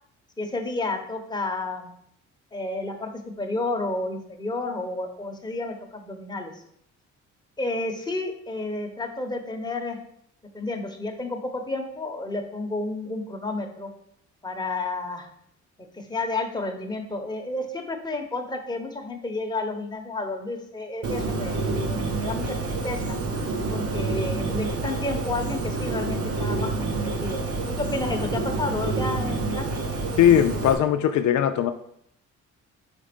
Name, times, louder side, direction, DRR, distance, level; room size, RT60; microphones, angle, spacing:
voice 1, 0.4-1.9 2.5-3.1 3.4-6.6 7.6-10.0 10.5-13.9 14.4-15.3 15.9-23.2 23.7-27.4 27.7-29.7, left 2 dB, 15° left, 3 dB, 1.1 m, -31 dB
Bird, 21.0-30.7, right 3 dB, 50° right, 1.1 m, -28 dB
voice 2, 30.2-31.7, left 10 dB, 70° left, 7 dB, 0.5 m, -19 dB
5.3 x 3.7 x 5.2 m, 0.69 s
cardioid pair, 90°, 30 cm